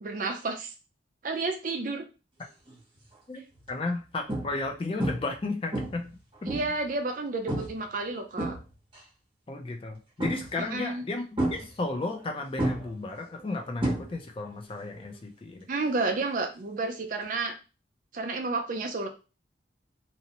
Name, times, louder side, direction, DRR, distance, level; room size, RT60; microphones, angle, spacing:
voice 1, 0.0-0.7 1.2-2.1 6.5-8.6 10.7-11.0 15.7-17.6 18.1-19.1, right 3 dB, 45° right, 5 dB, 0.4 m, -31 dB
sound 1, 2.7-3.0 3.6-3.7 4.3-4.7 5.0-5.4 5.7-6.9 7.5-7.8 8.2-9.0 10.2-10.7 11.4-12.3 12.6-14.5 14.7-15.1 17.2-17.3, right 1 dB, 25° right, 0.8 m, -32 dB
voice 2, 3.7-6.1 6.4-6.5 9.5-11.2 11.5-15.7, left 2 dB, 30° left, 4 dB, 0.3 m, -33 dB
2.6 x 2.0 x 2.8 m, 0.32 s
head